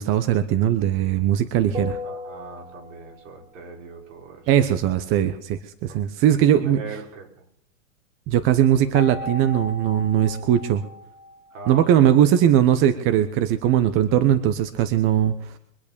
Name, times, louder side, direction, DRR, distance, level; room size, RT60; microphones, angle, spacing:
voice 1, 0.0-2.0 4.5-7.0 8.3-10.8 11.7-15.5, right 10 dB, 30° right, 11 dB, 1.0 m, -20 dB
sound 1, 1.7-3.3 8.9-12.3, left 2 dB, 15° right, 2.3 m, -36 dB
voice 2, 1.7-4.5 5.9-6.0 6.3-7.3 11.5-12.1, right 4 dB, 70° right, 1 dB, 5.4 m, -40 dB
24.0 x 8.3 x 6.9 m, 0.72 s
hypercardioid pair, 130°, 40 cm